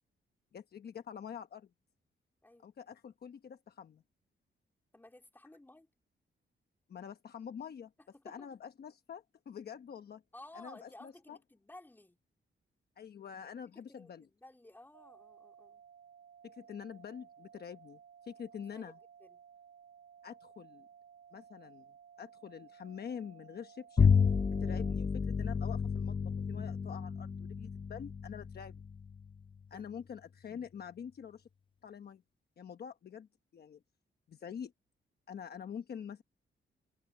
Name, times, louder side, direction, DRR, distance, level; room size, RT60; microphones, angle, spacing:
voice 1, 0.5-1.7 2.6-4.0 6.9-7.9 8.2-10.2 10.5-11.4 13.0-14.3 16.4-19.0 20.2-20.9 21.3-21.9 22.2-24.1 24.6-28.8 29.7-31.5 31.8-32.2 32.6-33.8 34.3-34.7 35.3-36.2, left 7 dB, 55° left, 1.0 m, -46 dB
voice 2, 4.9-5.9 8.1-8.5 10.3-12.2 13.7-15.8 18.7-18.9 19.2-19.4 29.7-30.0, left 1 dB, 10° left, 3.5 m, -55 dB
sound 1, 14.9-24.9, right 7 dB, 70° right, 2.6 m, -58 dB
Bowed string instrument, 24.0-29.6, left 6 dB, 25° left, 0.5 m, -31 dB
wide cardioid pair, 160°, 20 cm